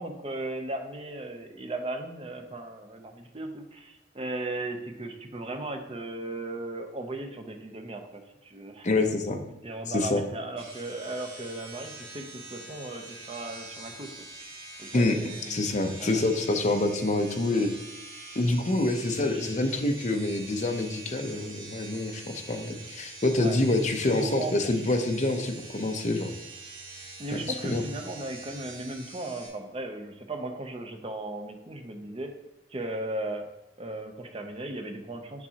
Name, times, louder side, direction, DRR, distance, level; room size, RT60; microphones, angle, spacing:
voice 1, 0.0-8.9 9.6-14.1 14.8-16.2 19.2-19.5 23.4-23.6 24.1-24.6 27.2-32.3 32.7-33.5 33.8-35.5, right 2 dB, 30° right, 4 dB, 0.6 m, -36 dB
voice 2, 8.8-9.4 9.9-10.2 14.9-17.7 18.4-26.3 27.3-27.8, left 2 dB, 40° left, 5 dB, 0.6 m, -27 dB
sound 1, 10.6-29.5, right 3 dB, 50° right, 1.7 m, -45 dB
7.1 x 6.0 x 2.8 m, 0.96 s
head